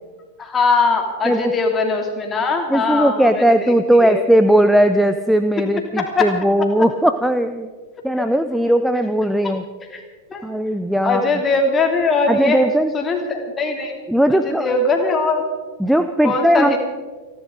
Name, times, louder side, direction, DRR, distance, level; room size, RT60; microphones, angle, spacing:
voice 1, 0.4-4.2 6.0-6.3 8.2-8.3 9.4-9.5 9.9-10.4 11.0-12.6 12.9-13.9 14.3-15.4 16.2-16.8, left 3 dB, 20° left, 2 dB, 3.1 m, -21 dB
voice 2, 1.2-1.5 2.7-7.7 8.0-9.6 10.4-11.2 12.3-12.9 14.1-14.8 15.8-16.8, equal, ahead, 9 dB, 0.7 m, -17 dB
29.0 x 12.0 x 3.9 m, 1.4 s
figure-of-eight pair, 90°, 0 cm